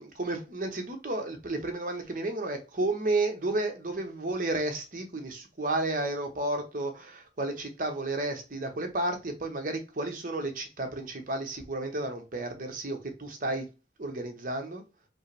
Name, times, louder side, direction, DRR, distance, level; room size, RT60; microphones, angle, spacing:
voice 1, 0.0-13.7 14.0-14.8, right 2 dB, 45° right, 0.9 m, -32 dB
5.3 x 2.0 x 4.6 m
head